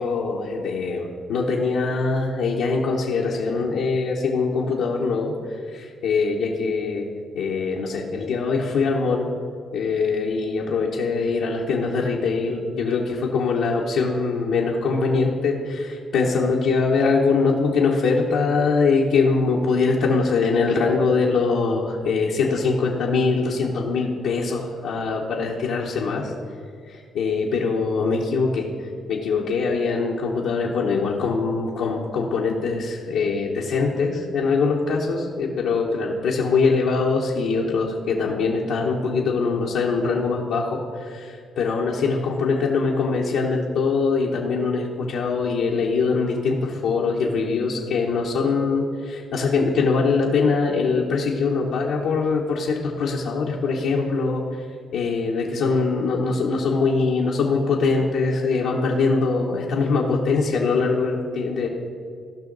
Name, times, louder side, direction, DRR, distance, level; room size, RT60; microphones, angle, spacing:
voice 1, 0.0-7.1 7.3-9.3 9.7-26.3 26.9-54.7 54.9-61.7, left 4 dB, 85° left, -4 dB, 1.1 m, -23 dB
16.5 x 5.8 x 4.0 m, 2.3 s
cardioid pair, 90°, 0 cm